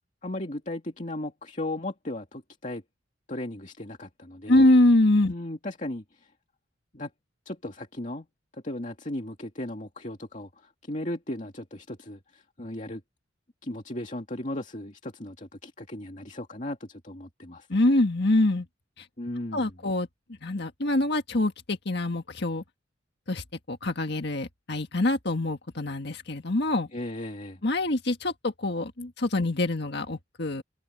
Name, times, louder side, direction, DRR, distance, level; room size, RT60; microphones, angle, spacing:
voice 1, 0.2-2.8 3.3-4.6 5.3-6.3 6.9-7.1 7.5-8.3 8.5-13.0 13.6-17.7 19.2-19.7 26.9-27.6, left 1 dB, 40° left, 2.4 m, -36 dB
voice 2, 4.5-5.3 17.7-18.7 19.0-19.1 19.5-20.1 20.4-22.6 23.3-26.9 27.6-30.6, left 1 dB, 55° left, 1.7 m, -24 dB
head